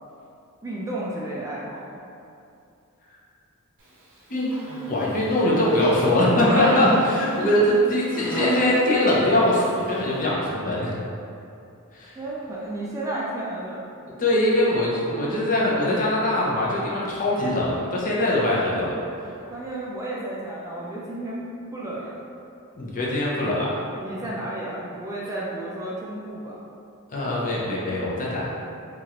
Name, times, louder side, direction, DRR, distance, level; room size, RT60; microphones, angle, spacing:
voice 1, 0.6-2.0 12.2-13.9 19.5-22.2 24.0-26.6, right 1 dB, 15° right, -6 dB, 0.3 m, -32 dB
Human voice, 4.5-5.1 5.5-7.7 8.1-9.2 9.5-9.7, right 1 dB, 65° right, 0.6 m, -31 dB
voice 2, 4.9-10.9 11.9-12.2 14.2-19.0 22.8-23.7 27.1-28.5, left 1 dB, 40° left, -5 dB, 0.6 m, -22 dB
3.0 x 2.4 x 2.8 m, 2.6 s
head